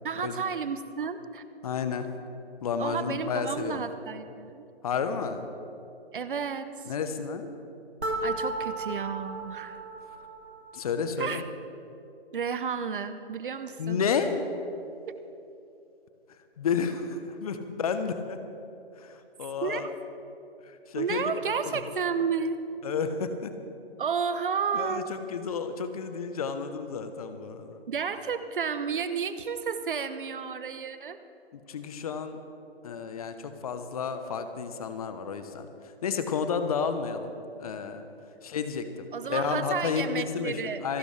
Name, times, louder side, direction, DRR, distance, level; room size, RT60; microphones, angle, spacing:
voice 1, 0.0-1.4 2.8-4.7 6.1-6.9 8.2-9.8 11.2-11.4 12.3-14.0 15.1-15.2 19.6-19.9 21.0-22.6 24.0-25.1 27.9-31.2 39.1-41.0, right 6 dB, 55° right, 11 dB, 1.0 m, -32 dB
voice 2, 1.6-2.1 2.6-3.8 4.8-5.5 6.9-7.5 10.7-11.4 13.8-14.3 16.6-18.4 19.0-19.9 20.6-21.3 21.6-21.8 22.8-23.5 24.7-25.0 25.3-27.8 31.5-32.4 32.8-37.3 37.6-38.1 38.4-41.0, left 6 dB, 35° left, 9 dB, 1.0 m, -31 dB
sound 1, 8.0-10.9, right 2 dB, 85° right, 2.0 m, -34 dB
27.0 x 11.5 x 3.3 m, 2.7 s
figure-of-eight pair, 140°, 31 cm